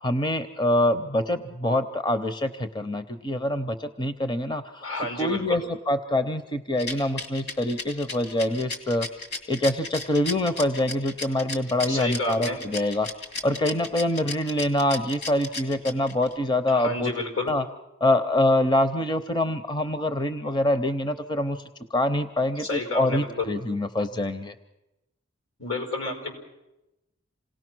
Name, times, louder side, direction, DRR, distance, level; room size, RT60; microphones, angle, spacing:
voice 1, 0.0-4.9 5.2-9.1 9.5-13.1 13.4-17.1 17.5-17.6 18.0-21.6 21.9-24.5, left 1 dB, 20° left, 9 dB, 0.7 m, -25 dB
voice 2, 4.8-5.6 11.8-12.6 16.7-17.5 22.6-23.3 25.6-26.3, left 2 dB, 80° left, 3 dB, 5.5 m, -30 dB
Rattle, 6.8-16.3, left 3 dB, 55° left, 2.4 m, -34 dB
27.5 x 18.0 x 6.2 m, 0.96 s
head